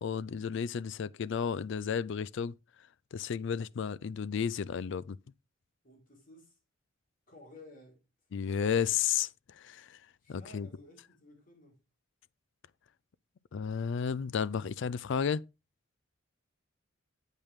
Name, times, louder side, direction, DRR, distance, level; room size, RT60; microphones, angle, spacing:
voice 1, 0.0-2.5 3.1-5.2 8.3-9.3 9.6-10.0 10.3-10.7 13.5-15.4, left 7 dB, 60° left, 0.4 m, -32 dB
voice 2, 5.8-6.6 7.3-8.1 10.2-11.8, left 2 dB, 45° left, 4.3 m, -55 dB
8.8 x 8.3 x 3.5 m
head